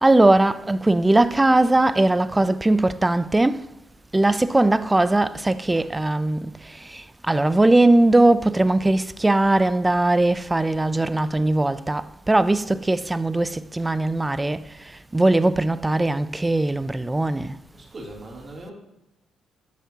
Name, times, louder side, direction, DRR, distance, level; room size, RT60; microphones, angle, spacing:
voice 1, 0.0-3.7 4.1-14.6 15.1-17.6, right 2 dB, 15° right, 0.4 m, -20 dB
voice 2, 17.7-18.7, right 1 dB, 35° right, 3.1 m, -39 dB
12.5 x 7.4 x 2.9 m
cardioid pair, 90°, 0 cm